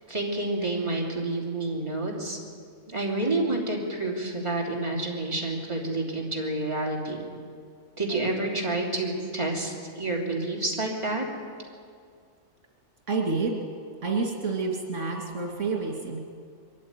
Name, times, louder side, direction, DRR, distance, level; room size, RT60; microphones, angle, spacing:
voice 1, 0.1-2.4 2.9-7.2 8.0-11.2, right 2 dB, 25° right, -2 dB, 3.2 m, -29 dB
voice 2, 13.1-13.6 14.0-16.2, right 4 dB, 85° right, 0 dB, 3.0 m, -28 dB
22.5 x 14.0 x 9.6 m, 2.2 s
omnidirectional pair, 1.2 m